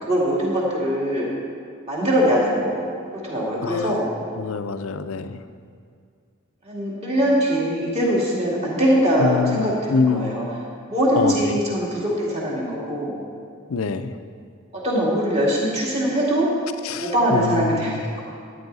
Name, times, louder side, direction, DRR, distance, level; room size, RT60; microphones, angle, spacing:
voice 1, 0.0-1.3 1.9-4.1 6.6-10.4 10.9-13.2 14.7-16.5 16.9-18.0, equal, 30° right, -5 dB, 2.4 m, -22 dB
voice 2, 3.6-4.0 4.4-5.4 9.2-10.3 11.2-11.6 13.7-14.1 16.8-18.0, left 5 dB, 80° left, 10 dB, 0.5 m, -25 dB
13.0 x 10.0 x 4.0 m, 2.3 s
head